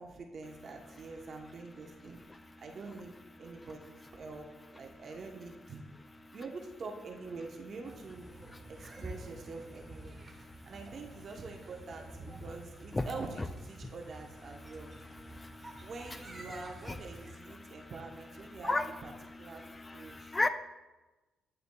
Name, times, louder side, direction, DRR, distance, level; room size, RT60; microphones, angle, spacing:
voice 1, 0.0-4.5 4.7-5.8 6.3-8.3 8.7-10.2 10.7-14.9 15.8-18.8 19.0-19.1 19.4-19.6 19.9-20.3, right 3 dB, 50° right, 1 dB, 0.8 m, -45 dB
sound 1, 7.8-17.3, right 1 dB, 25° right, 1.1 m, -50 dB
voice 2, 15.3-15.9 17.6-17.9 18.6-18.9 19.6-20.5, left 2 dB, 20° left, 10 dB, 0.4 m, -34 dB
9.0 x 6.6 x 2.2 m, 1.1 s
cardioid pair, 90°, 0 cm